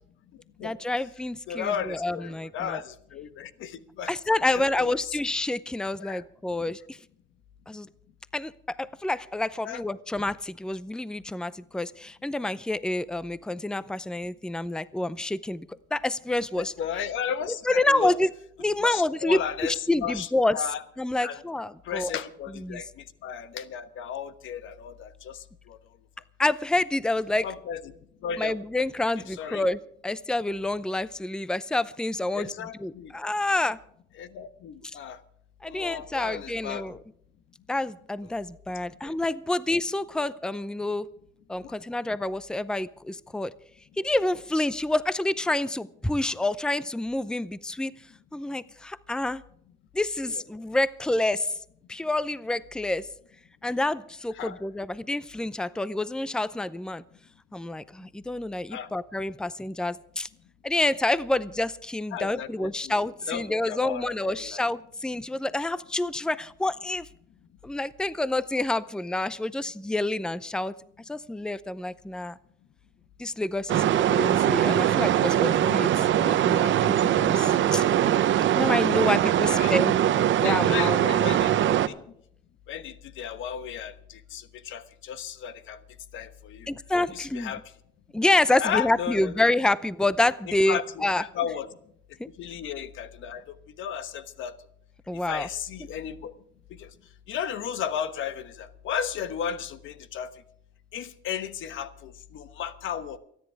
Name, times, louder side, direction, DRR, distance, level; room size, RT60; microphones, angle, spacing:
voice 1, 0.6-2.8 4.1-7.0 7.7-7.9 8.3-15.6 15.9-16.7 17.7-18.3 18.6-20.6 21.0-22.1 22.6-22.8 26.4-27.5 28.4-32.5 32.8-33.8 35.6-37.0 37.7-41.1 41.5-43.5 44.0-48.0 48.3-49.4 49.9-51.5 51.9-53.1 53.6-57.0 57.5-60.3 60.6-67.1 67.6-70.7 71.1-72.4 73.2-77.8 78.5-80.0 80.4-81.0 81.3-81.4 86.7-87.5 88.1-91.2 92.2-92.3 95.1-95.5, left 2 dB, 5° left, 16 dB, 0.6 m, -28 dB
voice 2, 1.5-4.1 4.5-5.2 6.0-6.2 9.6-9.8 16.6-18.1 18.8-20.8 21.2-21.4 21.8-22.9 23.2-25.4 25.7-25.8 27.4-27.9 28.2-28.5 29.3-29.7 32.3-33.1 34.2-35.2 35.7-37.0 39.0-39.1 41.6-41.7 50.3-50.4 54.3-54.6 58.7-58.9 62.1-64.6 74.5-74.6 79.4-79.7 80.4-82.0 82.7-85.8 86.1-86.7 87.1-87.6 88.6-89.3 90.5-91.7 92.4-93.4 93.8-94.5 95.3-96.3 96.8-96.9 97.3-100.3 100.9-103.2, left 8 dB, 80° left, 12 dB, 1.2 m, -34 dB
sound 1, 73.7-81.9, right 11 dB, 70° right, 0.8 m, -22 dB
29.5 x 10.5 x 3.5 m, 0.68 s
cardioid pair, 90°, 20 cm